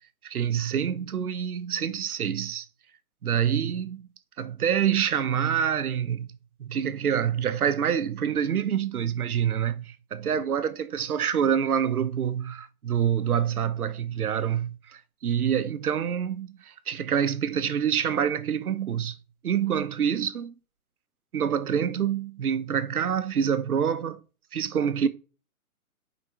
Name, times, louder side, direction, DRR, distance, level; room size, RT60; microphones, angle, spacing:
voice 1, 0.2-2.7 3.2-4.1 4.4-6.3 6.6-19.2 19.4-20.5 21.3-24.2 24.5-25.1, right 8 dB, 80° right, 1.0 m, -26 dB
7.0 x 5.2 x 3.4 m
hypercardioid pair, 155°, 43 cm